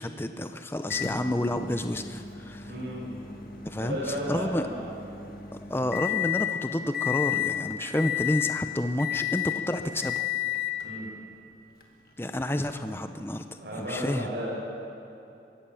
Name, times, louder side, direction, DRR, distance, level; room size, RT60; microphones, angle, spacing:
voice 1, 0.0-2.7 3.7-4.0 4.3-4.6 5.5-10.2 12.2-13.4 13.8-14.3, left 1 dB, 15° left, 8 dB, 0.7 m, -30 dB
Microwave oven, 0.9-6.5 6.9-7.6 8.0-8.6 9.0-9.6 10.0-10.8 11.8-11.9 13.9-14.0, left 12 dB, 55° left, 1.9 m, -32 dB
voice 2, 2.7-3.1 3.8-4.9 10.8-11.0 13.6-14.6, equal, 65° right, -5 dB, 6.8 m, -33 dB
23.0 x 16.5 x 7.1 m, 2.7 s
head